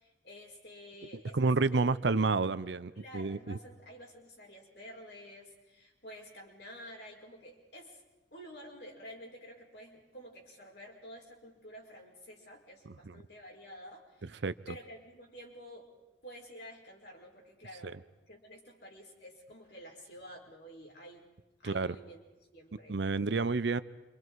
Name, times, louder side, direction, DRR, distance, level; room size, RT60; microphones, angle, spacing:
voice 1, 0.0-2.3 2.9-8.0 8.3-15.9 16.2-18.0 18.3-21.3 21.6-22.2 22.5-23.0 23.3-23.4, equal, 60° left, -1 dB, 4.9 m, -50 dB
voice 2, 1.3-3.6 14.4-14.5 17.8-17.9 21.6-22.0 22.9-23.8, right 3 dB, 65° right, 14 dB, 0.6 m, -29 dB
28.5 x 25.5 x 4.7 m, 1.1 s
head